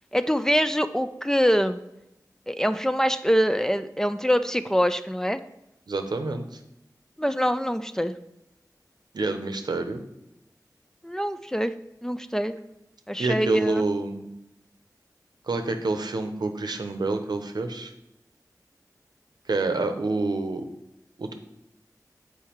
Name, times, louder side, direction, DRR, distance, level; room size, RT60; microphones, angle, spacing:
voice 1, 0.1-1.8 2.5-5.4 7.2-8.1 11.0-11.7 12.0-12.6 13.1-13.9, equal, 5° left, 11 dB, 0.4 m, -24 dB
voice 2, 5.9-6.6 9.1-10.0 13.2-14.2 15.5-17.9 19.5-20.6 21.2-21.3, right 3 dB, 85° right, 6 dB, 0.8 m, -27 dB
7.2 x 4.7 x 4.5 m, 0.86 s
wide cardioid pair, 60°, 7 cm